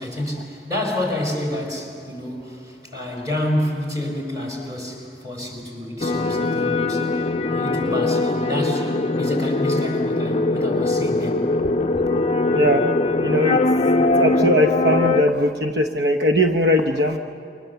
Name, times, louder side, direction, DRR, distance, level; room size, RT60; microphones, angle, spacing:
voice 1, 0.0-7.2 7.5-11.5, left 1 dB, 20° right, 1 dB, 4.8 m, -28 dB
sound 1, 6.0-15.2, left 2 dB, 35° left, 0.5 m, -21 dB
voice 2, 12.5-12.8 13.2-13.6 14.1-17.2, equal, 60° right, 4 dB, 0.9 m, -19 dB
29.0 x 25.0 x 7.0 m, 2.5 s
head